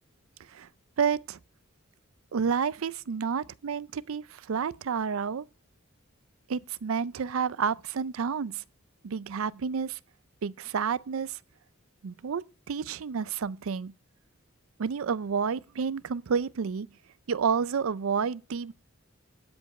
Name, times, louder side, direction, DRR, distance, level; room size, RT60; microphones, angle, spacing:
voice 1, 1.0-1.4 2.3-5.4 6.5-8.6 9.0-10.0 10.4-11.4 12.0-13.9 14.8-16.9 17.3-18.7, right 6 dB, 75° right, 0.4 m, -30 dB
12.5 x 5.2 x 7.7 m
head